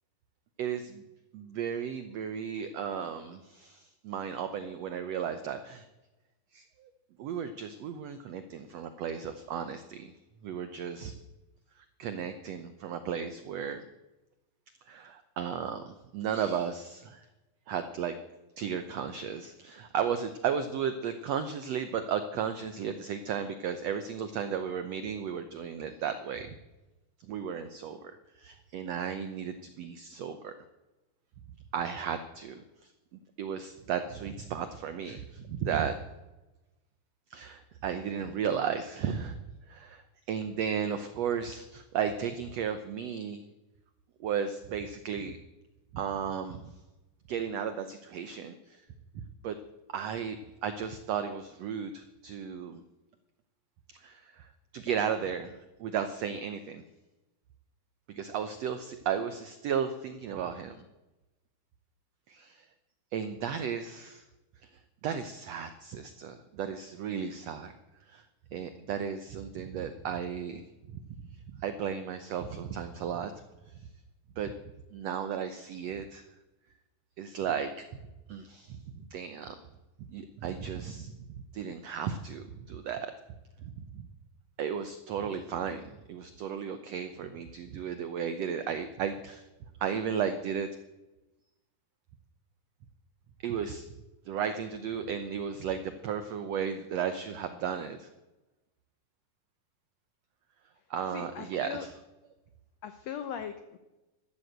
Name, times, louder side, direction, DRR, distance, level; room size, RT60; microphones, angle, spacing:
voice 1, 0.6-1.0 1.3-5.9 6.5-6.9 7.2-10.1 10.4-11.2 11.8-13.8 14.9-17.3 17.7-18.1 18.6-26.5 27.2-30.5 31.7-36.0 37.3-39.4 39.7-43.4 44.2-45.4 45.9-46.7 47.3-48.8 49.4-49.6 49.9-52.8 53.9-54.5 54.7-56.8 58.1-60.8 62.3-62.7 63.1-64.2 65.0-67.7 68.1-68.2 68.5-71.0 71.5-73.3 73.7-73.8 74.4-74.5 74.9-76.3 77.2-77.7 78.3-78.8 79.1-79.6 80.0-81.1 81.5-83.1 83.6-84.1 84.6-85.8 86.1-89.5 89.8-90.7 93.4-93.9 94.2-98.1 100.9-101.9, right 7 dB, 85° right, 10 dB, 1.4 m, -34 dB
voice 2, 101.1-101.9 102.8-103.8, left 8 dB, 80° left, 10 dB, 1.5 m, -39 dB
13.0 x 12.5 x 7.9 m, 1.1 s
omnidirectional pair, 4.1 m